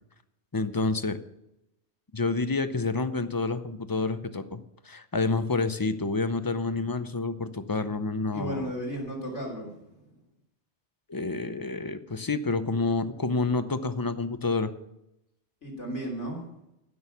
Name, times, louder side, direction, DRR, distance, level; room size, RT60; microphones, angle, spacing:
voice 1, 0.5-1.2 2.1-8.7 11.1-14.7, left 3 dB, 25° left, 11 dB, 0.6 m, -28 dB
voice 2, 8.3-9.9 15.6-16.5, right 1 dB, 90° left, -1 dB, 3.6 m, -34 dB
16.5 x 6.3 x 7.0 m, 0.84 s
omnidirectional pair, 1.2 m